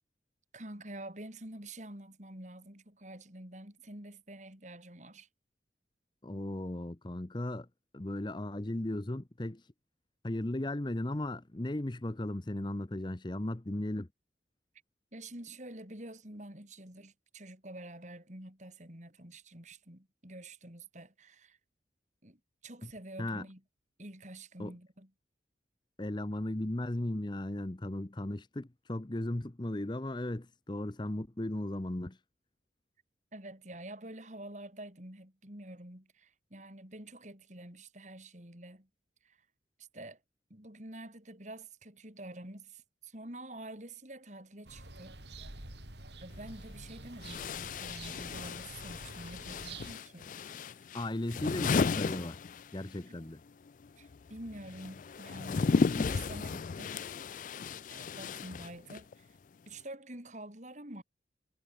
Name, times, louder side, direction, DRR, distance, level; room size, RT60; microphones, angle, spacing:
voice 1, 0.5-5.3 15.1-21.6 22.2-23.6 24.0-25.1 33.3-38.9 39.2-39.4 39.9-40.2 40.5-45.2 46.2-50.9 53.0-53.2 54.0-57.0 57.5-57.6 57.9-59.4 59.7-61.0, right 1 dB, 40° right, 6.0 m, -48 dB
voice 2, 6.2-7.7 7.9-9.6 10.2-14.1 22.8-22.9 23.2-23.4 24.6-24.8 26.0-32.2 50.9-52.4 52.7-53.4, left 1 dB, 25° left, 0.8 m, -36 dB
sound 1, 44.6-49.9, right 2 dB, 75° right, 5.2 m, -48 dB
sound 2, 46.3-46.4 47.2-53.0 53.3-59.1, left 4 dB, 45° left, 0.4 m, -34 dB
head